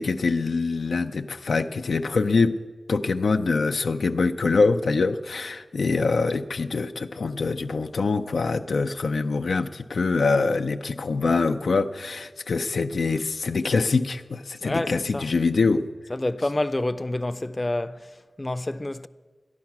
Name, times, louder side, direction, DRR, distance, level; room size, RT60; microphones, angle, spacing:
voice 1, 0.0-2.6 2.9-15.9, left 4 dB, 90° left, 0.5 m, -24 dB
voice 2, 14.6-15.4 16.1-19.1, left 2 dB, 35° left, 0.5 m, -28 dB
14.5 x 10.5 x 6.0 m
cardioid pair, 45°, 0 cm